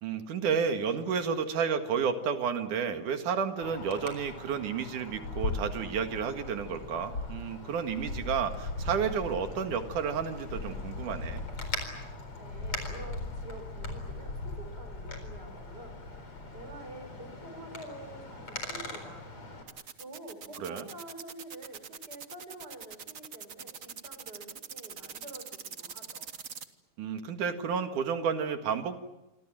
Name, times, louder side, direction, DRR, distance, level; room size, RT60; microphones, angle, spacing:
voice 1, 0.0-11.4 20.6-20.9 27.0-29.0, right 6 dB, 90° right, 7 dB, 3.4 m, -31 dB
Wind, 3.6-19.6, left 2 dB, 45° left, 5.0 m, -39 dB
voice 2, 12.4-16.0 16.5-19.3 20.0-26.3, right 2 dB, 30° right, 6 dB, 6.4 m, -47 dB
sound 1, 19.7-26.7, right 6 dB, 70° right, 0.7 m, -43 dB
27.0 x 25.5 x 7.7 m, 0.98 s
omnidirectional pair, 3.5 m